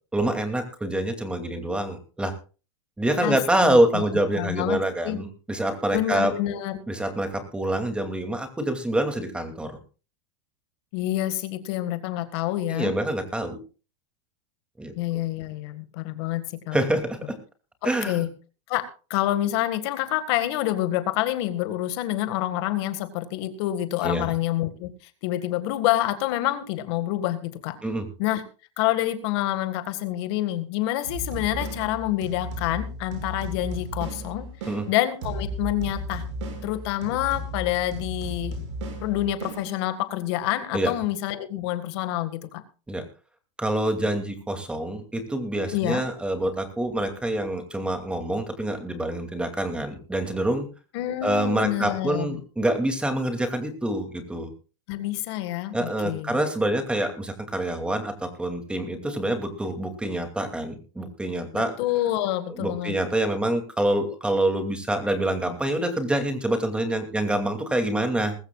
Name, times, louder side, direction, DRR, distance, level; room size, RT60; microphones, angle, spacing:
voice 1, 0.1-2.3 3.0-6.3 6.9-9.8 12.7-13.6 14.8-14.9 16.7-17.2 17.8-18.3 24.0-24.3 27.8-28.1 34.7-34.9 40.7-40.9 42.9-43.1 43.6-50.7 51.2-54.5 55.7-61.7 62.5-68.4, right 1 dB, 5° right, 6 dB, 2.6 m, -26 dB
voice 2, 3.2-4.0 4.3-5.2 5.9-6.8 10.9-12.9 15.0-16.8 17.8-18.3 18.7-18.9 19.1-24.9 25.2-27.8 28.2-28.4 28.8-36.3 36.6-38.6 39.0-42.6 45.7-46.1 50.9-52.4 54.9-56.4 61.5-63.0, left 14 dB, 60° left, 10 dB, 1.8 m, -27 dB
sound 1, 31.0-40.2, right 1 dB, 75° right, 6.5 m, -35 dB
20.5 x 15.0 x 2.4 m, 0.34 s
supercardioid pair, 130°, 16 cm